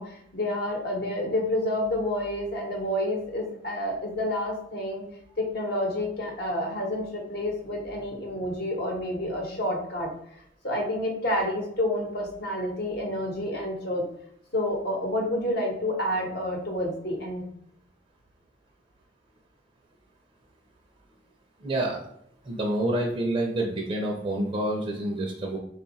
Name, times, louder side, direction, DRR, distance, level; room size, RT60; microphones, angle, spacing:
voice 1, 0.0-5.0 5.4-10.1 10.6-14.0 14.5-17.5, left 1 dB, 60° left, 0 dB, 1.0 m, -29 dB
voice 2, 21.6-22.0 22.5-25.6, right 1 dB, 30° right, -1 dB, 0.5 m, -28 dB
3.5 x 2.3 x 4.0 m, 0.70 s
head